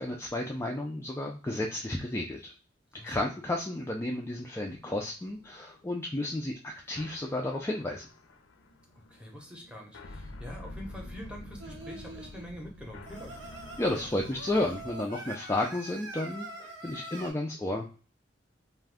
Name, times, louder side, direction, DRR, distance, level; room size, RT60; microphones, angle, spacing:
voice 1, 0.0-2.5 3.0-8.1 13.8-17.9, left 1 dB, 15° left, 0 dB, 0.3 m, -32 dB
voice 2, 2.9-3.3 9.1-13.4, equal, 5° right, 0 dB, 0.7 m, -45 dB
sound 1, 5.3-14.9, left 2 dB, 80° left, 0.5 m, -48 dB
Singing, 11.6-12.4 13.1-17.3, right 2 dB, 70° right, 0.8 m, -44 dB
2.5 x 2.2 x 3.4 m, 0.37 s
head